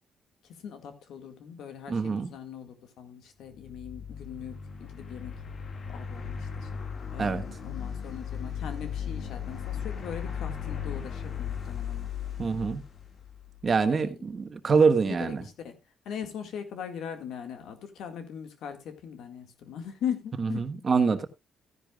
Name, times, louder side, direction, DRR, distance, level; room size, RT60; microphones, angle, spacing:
voice 1, 0.5-5.3 5.9-6.8 7.1-12.1 13.9-14.1 15.0-15.8 16.1-20.7, left 8 dB, 75° left, 2.0 m, -40 dB
voice 2, 1.9-2.3 7.2-7.4 12.4-12.8 13.6-15.4 20.4-21.3, right 5 dB, 40° right, 1.3 m, -25 dB
sound 1, 3.5-13.7, left 7 dB, 55° left, 2.1 m, -37 dB
15.0 x 10.0 x 2.4 m
cardioid pair, 90°, 0 cm